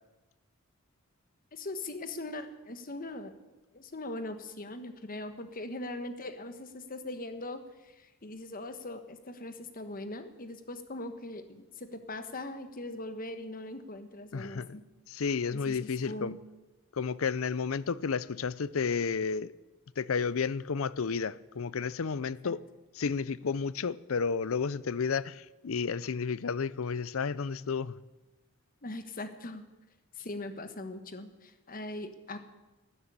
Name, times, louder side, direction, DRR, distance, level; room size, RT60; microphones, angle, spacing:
voice 1, 1.5-3.3 3.7-14.8 15.5-16.4 22.4-22.5 28.8-29.7 30.1-32.4, left 2 dB, 45° left, 1.4 m, -41 dB
voice 2, 14.3-14.8 15.1-16.4 16.9-19.5 20.0-22.6 22.9-28.0, left 5 dB, 80° left, 0.6 m, -32 dB
12.5 x 11.0 x 8.8 m
head